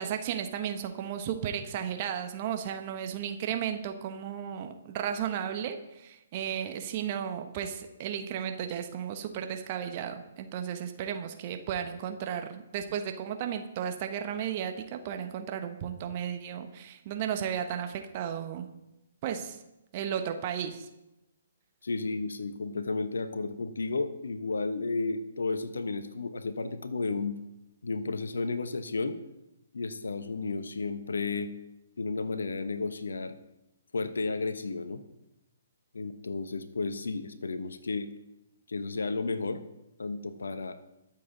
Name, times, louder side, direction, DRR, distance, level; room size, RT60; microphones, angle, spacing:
voice 1, 0.0-18.7 19.2-19.6 19.9-20.9, right 9 dB, 35° right, 6 dB, 1.2 m, -34 dB
voice 2, 21.8-27.4 27.8-29.2 29.7-31.5 32.0-33.4 33.9-35.0 35.9-38.1 38.7-39.6 40.0-40.8, left 3 dB, 65° left, 11 dB, 1.0 m, -32 dB
22.0 x 7.5 x 4.0 m, 0.91 s
figure-of-eight pair, 125°, 0 cm